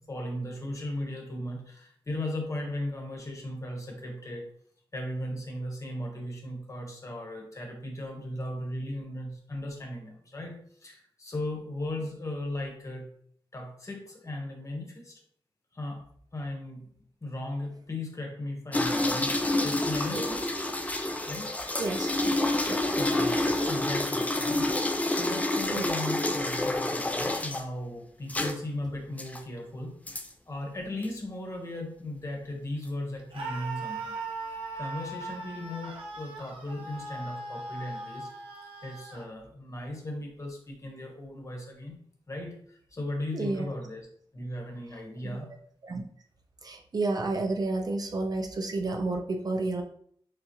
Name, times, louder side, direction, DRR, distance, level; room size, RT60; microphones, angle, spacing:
voice 1, 0.1-4.5 4.9-13.1 13.5-15.2 15.7-16.1 16.3-16.9 17.2-20.5 21.3-21.5 23.0-30.0 30.5-34.1 34.8-38.3 38.8-42.0 42.3-44.0 44.3-45.5, left 1 dB, 35° left, 1 dB, 1.2 m, -37 dB
sound 1, 18.7-27.6 28.3-28.5 29.2-29.4 30.1-30.3 31.0-31.2, left 1 dB, 15° left, 0.5 m, -28 dB
voice 2, 21.8-22.1 22.7-22.8 25.7-25.9 43.3-43.7 45.8-46.0 46.6-49.8, right 2 dB, 45° right, 3 dB, 0.5 m, -30 dB
Screaming, 33.3-39.3, right 3 dB, 85° right, 0.9 m, -39 dB
6.7 x 2.3 x 3.0 m, 0.62 s
wide cardioid pair, 120°, 9 cm